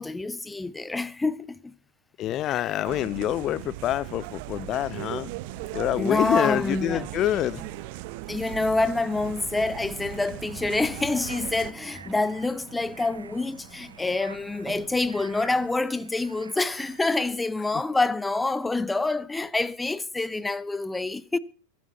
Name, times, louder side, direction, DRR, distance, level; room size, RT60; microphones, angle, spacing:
voice 1, 0.0-1.7 2.3-2.8 6.0-7.0 8.3-21.4, left 2 dB, 10° left, 0.9 m, -27 dB
voice 2, 2.2-5.3 5.7-7.6 17.7-17.8, left 13 dB, 35° left, 0.6 m, -26 dB
sound 1, 2.8-11.7, right 17 dB, 45° right, 0.9 m, -38 dB
sound 2, 4.4-15.7, right 5 dB, 20° right, 7.1 m, -48 dB
sound 3, 11.2-17.3, right 6 dB, 70° right, 1.0 m, -49 dB
23.0 x 12.5 x 4.0 m
figure-of-eight pair, 90°, 0 cm